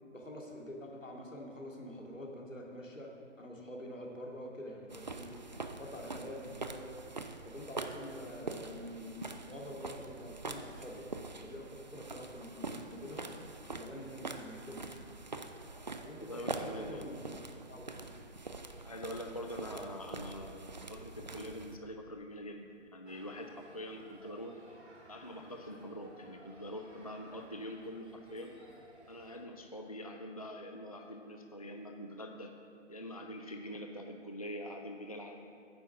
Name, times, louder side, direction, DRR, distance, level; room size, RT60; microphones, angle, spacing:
voice 1, 0.0-5.4 5.8-6.9 7.4-9.2 9.5-11.1 11.4-13.3 13.7-15.1 16.0-17.4 17.7-18.0, equal, 75° left, -1 dB, 2.3 m, -46 dB
sound 1, 4.9-21.8, right 3 dB, 35° right, 0.4 m, -44 dB
voice 2, 16.2-17.3 18.8-24.6 25.1-28.6 29.1-32.5 32.9-35.4, equal, 30° left, 3 dB, 0.4 m, -44 dB
sound 2, 23.1-29.4, right 1 dB, 60° right, 2.4 m, -58 dB
9.4 x 8.0 x 5.6 m, 2.6 s
figure-of-eight pair, 145°, 38 cm